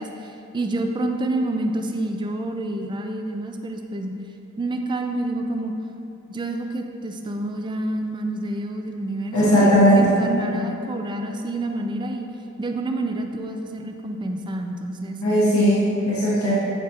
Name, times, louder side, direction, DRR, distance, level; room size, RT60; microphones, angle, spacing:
voice 1, 0.0-4.1 4.6-5.7 6.3-12.3 12.6-15.2, right 2 dB, 20° right, 4 dB, 0.3 m, -28 dB
voice 2, 9.3-10.2 15.2-16.5, equal, 80° left, -8 dB, 1.1 m, -17 dB
8.1 x 4.7 x 2.9 m, 2.8 s
head